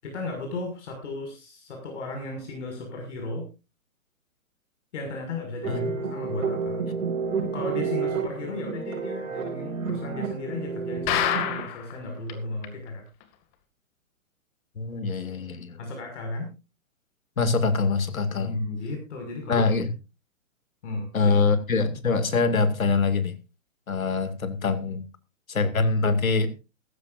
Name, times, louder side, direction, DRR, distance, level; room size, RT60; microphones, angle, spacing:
voice 1, 0.0-3.5 4.9-5.8 6.1-6.8 7.3-13.0 15.8-16.5 18.3-19.7 20.8-21.3, left 2 dB, 60° left, 6.0 m, -35 dB
sound 1, 5.6-11.6, right 6 dB, 70° right, 5.1 m, -30 dB
sound 2, 11.1-11.9 12.3-12.4 12.6-12.7 13.2-13.3, left 10 dB, 30° left, 2.2 m, -26 dB
voice 2, 14.8-15.8 17.4-18.6 19.5-19.9 21.1-23.4 23.9-25.1 25.5-26.5, left 4 dB, 90° left, 2.4 m, -24 dB
16.5 x 15.0 x 2.6 m
hypercardioid pair, 145°, 40 cm